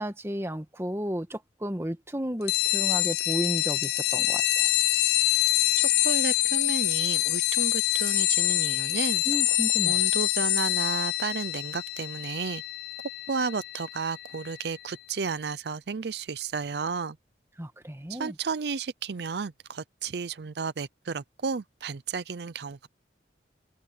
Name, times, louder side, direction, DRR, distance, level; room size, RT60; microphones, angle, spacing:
voice 1, 0.0-4.7 9.2-10.0 17.6-18.3, equal, 15° right, 1.5 m, -33 dB
sound 1, 2.5-14.6, left 18 dB, 60° left, 0.4 m, -26 dB
voice 2, 5.8-9.2 9.9-12.6 13.3-17.2 18.1-22.9, right 5 dB, 65° right, 0.5 m, -33 dB
head